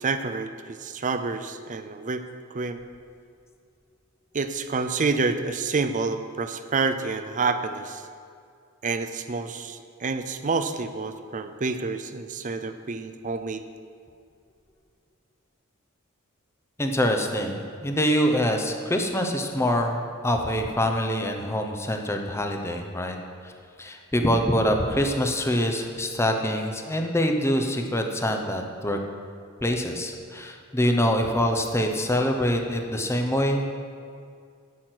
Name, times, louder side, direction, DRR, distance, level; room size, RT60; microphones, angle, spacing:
voice 1, 0.0-2.3 2.5-2.8 4.3-8.0 8.8-13.7, right 4 dB, 35° right, 9 dB, 0.5 m, -28 dB
voice 2, 16.8-23.2 23.4-23.5 23.8-29.0 29.6-33.7, equal, 10° left, 3 dB, 0.8 m, -25 dB
8.6 x 6.4 x 7.9 m, 2.3 s
head